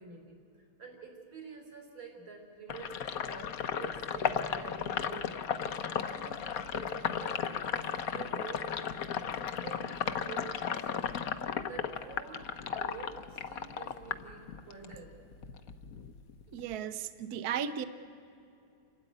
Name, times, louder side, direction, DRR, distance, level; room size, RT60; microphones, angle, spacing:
voice 1, 0.0-8.7 9.5-15.2, right 5 dB, 90° right, 2 dB, 5.0 m, -48 dB
Sink (filling or washing), 2.7-15.0 15.3-16.7, left 7 dB, 55° left, 1.1 m, -35 dB
voice 2, 16.5-17.8, right 8 dB, 60° right, 10 dB, 1.2 m, -35 dB
28.5 x 13.0 x 9.7 m, 2.7 s
omnidirectional pair, 2.2 m